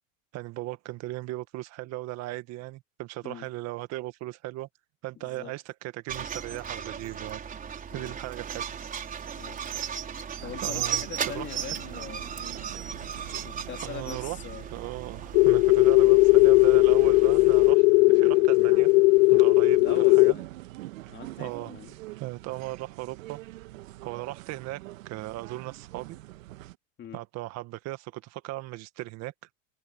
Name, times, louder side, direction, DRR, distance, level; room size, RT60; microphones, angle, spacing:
voice 1, 0.3-4.7 5.0-7.4 7.9-8.7 10.4-11.7 13.8-14.4 14.7-18.9 19.3-20.4 21.4-21.7 22.2-23.4 24.0-26.2 27.1-29.3, right 17 dB, 40° right, 1.8 m, -37 dB
voice 2, 5.2-5.5 7.9-8.1 9.4-9.6 10.4-12.5 13.4-14.7 15.8-16.1 19.8-20.5 21.1-21.9 27.0-27.2, left 10 dB, 30° left, 2.9 m, -42 dB
sound 1, 6.1-17.7, right 8 dB, 20° right, 5.0 m, -36 dB
sound 2, 10.4-26.8, right 17 dB, 80° right, 1.5 m, -45 dB
sound 3, 15.3-20.3, left 25 dB, 55° left, 0.5 m, -18 dB
supercardioid pair, 135°, 39 cm